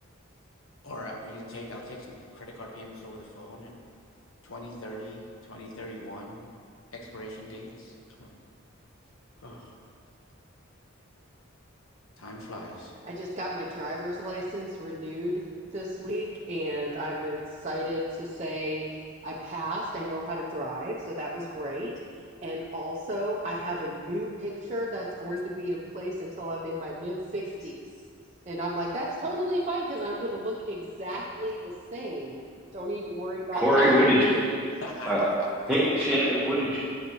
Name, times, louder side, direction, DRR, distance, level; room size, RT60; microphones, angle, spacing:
voice 1, 0.8-3.8 4.4-6.4 6.9-8.3 9.4-9.8 12.2-13.0 25.3-25.4 34.8-35.7, left 1 dB, 85° left, -1 dB, 1.3 m, -41 dB
voice 2, 13.0-27.8 28.5-32.4 32.7-34.0, equal, 35° right, -4 dB, 0.7 m, -33 dB
voice 3, 33.5-34.5 35.1-35.2 35.7-36.8, equal, 5° right, -11 dB, 1.3 m, -22 dB
9.3 x 8.2 x 3.1 m, 2.2 s
head